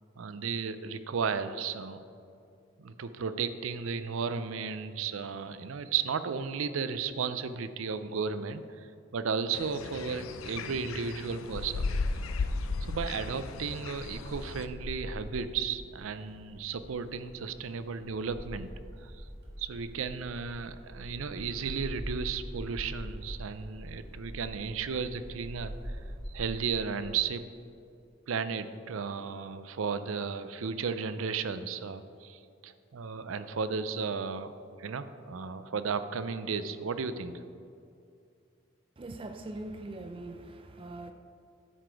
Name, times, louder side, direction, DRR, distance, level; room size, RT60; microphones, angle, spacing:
voice 1, 0.2-2.0 2.8-11.8 12.9-18.7 19.0-19.2 19.6-26.0 26.3-27.4 28.3-37.3, right 5 dB, 80° right, 11 dB, 0.5 m, -34 dB
sound 1, 9.5-14.7, left 3 dB, 80° left, 0.5 m, -35 dB
sound 2, 10.3-27.0, equal, 50° right, 1.9 m, -44 dB
voice 2, 39.0-41.1, right 2 dB, 25° right, 6 dB, 0.4 m, -41 dB
9.9 x 6.8 x 4.6 m, 2.5 s
head